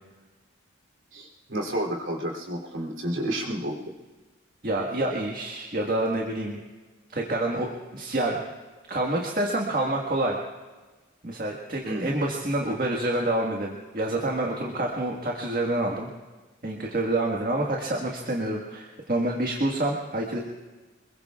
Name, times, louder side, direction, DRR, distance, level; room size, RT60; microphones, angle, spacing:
voice 1, 1.1-3.8 11.8-12.1, right 1 dB, 85° right, -1 dB, 3.1 m, -30 dB
voice 2, 4.6-6.6 7.1-8.4 8.9-10.4 11.2-16.1 16.6-20.4, right 1 dB, 45° right, -1 dB, 1.7 m, -27 dB
27.0 x 21.5 x 2.4 m, 1.3 s
head